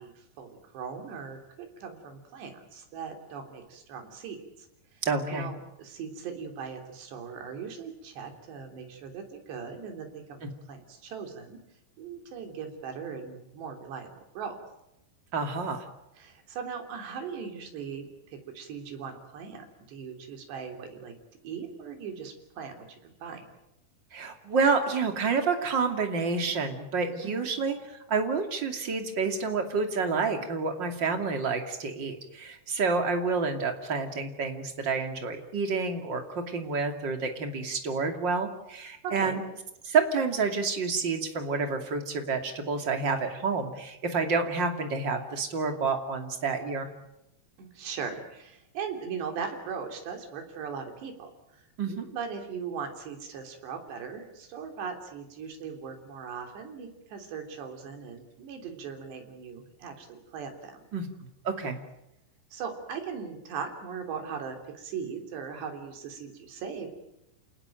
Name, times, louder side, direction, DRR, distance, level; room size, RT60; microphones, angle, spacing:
voice 1, 0.0-4.7 4.9-5.0 5.3-10.4 10.7-11.6 12.0-14.6 16.2-21.2 21.4-23.5 27.3-27.5 39.0-39.4 47.6-60.9 62.5-66.9, right 6 dB, 70° right, 4 dB, 5.4 m, -39 dB
voice 2, 5.0-5.5 10.4-10.5 15.3-15.9 24.1-27.8 28.1-39.4 39.8-46.9 51.8-52.1 60.9-61.1 61.4-61.8, right 4 dB, 30° right, 5 dB, 2.4 m, -29 dB
28.5 x 19.0 x 9.1 m, 0.87 s
omnidirectional pair, 5.2 m